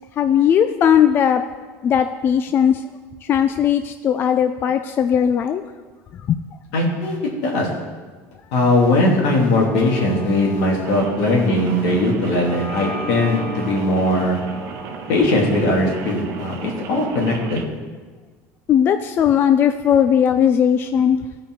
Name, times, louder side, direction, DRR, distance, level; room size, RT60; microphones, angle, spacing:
voice 1, 0.2-1.4 1.8-2.8 3.2-5.6 6.1-6.4 18.7-21.2, left 8 dB, 35° left, 9 dB, 0.3 m, -17 dB
voice 2, 6.7-7.7 8.5-14.4 15.1-17.6, left 1 dB, 75° left, -2 dB, 2.5 m, -19 dB
sound 1, 9.6-16.9, left 2 dB, 10° left, 1.4 m, -36 dB
Rain, 10.8-17.7, right 8 dB, 55° right, 0.8 m, -35 dB
15.5 x 5.2 x 4.6 m, 1.4 s
cardioid pair, 145°, 7 cm